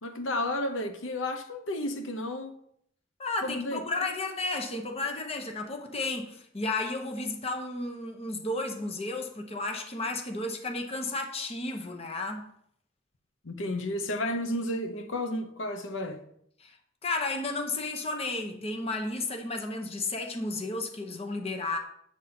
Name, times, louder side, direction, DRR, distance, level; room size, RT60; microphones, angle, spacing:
voice 1, 0.0-2.5 3.4-3.8 13.4-16.2, left 1 dB, 85° left, 0.9 m, -32 dB
voice 2, 3.2-12.5 16.6-16.8 17.0-21.8, left 2 dB, 30° left, 1.0 m, -33 dB
8.1 x 4.1 x 5.9 m
head